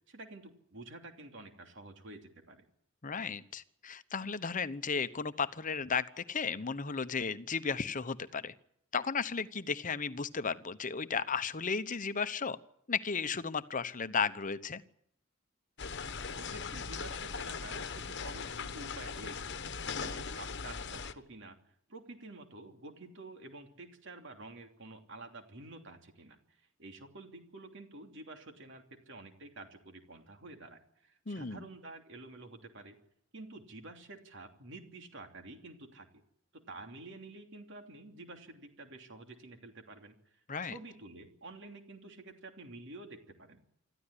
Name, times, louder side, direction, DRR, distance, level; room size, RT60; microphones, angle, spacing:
voice 1, 0.1-2.7 16.3-19.6 20.0-21.6 21.9-33.0 33.3-36.2 36.5-43.6, right 2 dB, 65° right, 5 dB, 3.0 m, -50 dB
voice 2, 3.0-8.5 8.9-12.6 12.9-14.8 31.3-31.7 40.5-40.7, left 5 dB, 40° left, 14 dB, 0.9 m, -34 dB
sound 1, 15.8-21.1, left 5 dB, 60° left, 1.2 m, -39 dB
25.5 x 14.0 x 9.9 m, 0.74 s
head